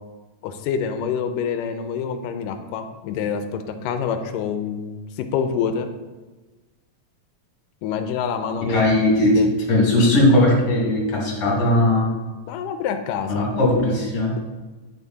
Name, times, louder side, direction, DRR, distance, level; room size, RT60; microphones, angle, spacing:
voice 1, 0.4-5.9 7.8-8.9 9.3-9.5 12.5-13.5, left 7 dB, 80° left, 8 dB, 2.1 m, -26 dB
voice 2, 8.6-12.1 13.3-14.4, left 1 dB, 45° left, -3 dB, 2.9 m, -18 dB
10.5 x 5.9 x 4.0 m, 1.2 s
omnidirectional pair, 3.9 m